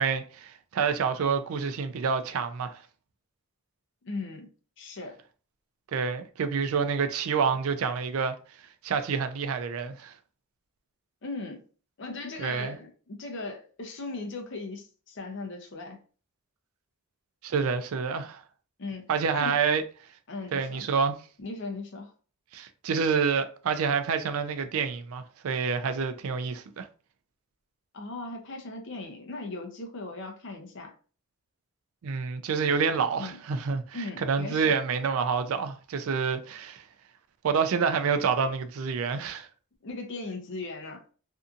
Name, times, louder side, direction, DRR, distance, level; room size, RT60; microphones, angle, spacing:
voice 1, 0.0-2.8 5.9-8.4 8.8-10.1 12.4-12.7 17.4-18.4 19.1-19.8 20.5-21.2 22.5-26.9 32.0-36.8 37.4-39.5, right 5 dB, 75° right, 0.4 m, -28 dB
voice 2, 4.0-4.5 4.8-5.2 11.2-11.6 12.0-16.0 18.8-19.6 20.3-20.9 21.4-22.1 27.9-30.9 33.2-33.4 33.9-34.8 39.8-41.0, left 3 dB, 55° left, 0.6 m, -38 dB
2.7 x 2.5 x 2.4 m
head